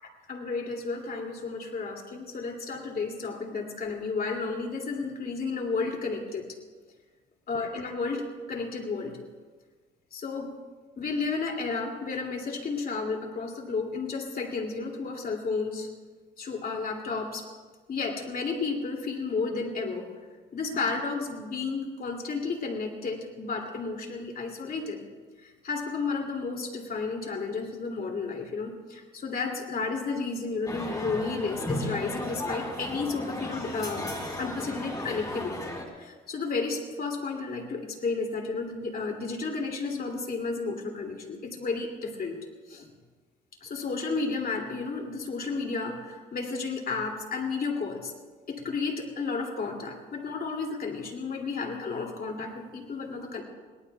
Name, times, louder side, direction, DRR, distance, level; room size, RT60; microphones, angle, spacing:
voice 1, 0.3-6.5 7.5-9.2 10.1-10.5 11.0-15.9 16.4-17.4 17.9-20.1 20.5-25.0 25.4-34.1 34.4-35.5 36.0-42.4 42.7-42.9 43.6-48.1 48.5-53.4, left 4 dB, 50° left, 1 dB, 2.7 m, -32 dB
sound 1, 30.7-35.8, left 1 dB, 20° left, 2.8 m, -35 dB
22.0 x 18.5 x 2.4 m, 1.4 s
cardioid pair, 90°, 20 cm